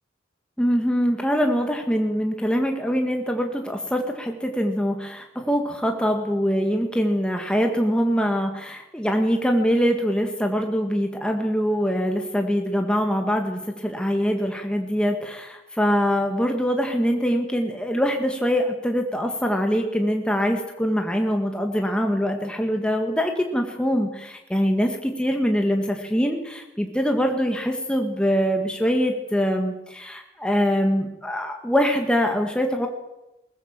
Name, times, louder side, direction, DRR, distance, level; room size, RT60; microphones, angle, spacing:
voice 1, 0.6-32.9, equal, 5° left, 3 dB, 1.9 m, -23 dB
22.0 x 19.5 x 7.5 m, 0.95 s
head